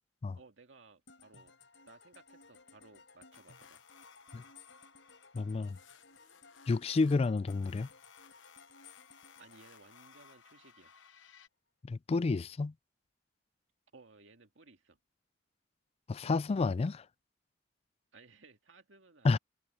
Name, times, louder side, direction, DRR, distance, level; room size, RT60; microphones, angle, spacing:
voice 1, 0.4-1.6 1.9-3.8 9.4-10.9 13.9-15.0 18.1-19.4, right 3 dB, 80° right, 2.1 m, -59 dB
sound 1, 1.1-10.8, left 4 dB, 70° left, 6.3 m, -59 dB
sound 2, 3.3-11.5, left 7 dB, 90° left, 1.1 m, -60 dB
voice 2, 5.3-5.8 6.7-7.9 11.8-12.7 16.1-17.1 19.2-19.4, left 3 dB, 35° left, 0.3 m, -30 dB
head